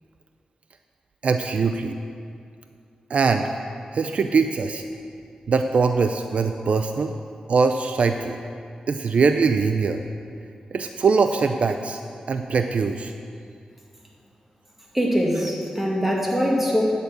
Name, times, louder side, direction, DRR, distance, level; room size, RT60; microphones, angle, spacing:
voice 1, 1.2-2.0 3.1-3.5 3.9-4.8 5.5-7.1 7.5-8.4 8.9-10.0 10.7-12.0 12.3-13.1, right 4 dB, 65° right, 6 dB, 0.4 m, -22 dB
voice 2, 14.9-16.8, equal, 10° right, -2 dB, 2.1 m, -22 dB
9.4 x 6.8 x 7.0 m, 2.4 s
cardioid pair, 80°, 2 cm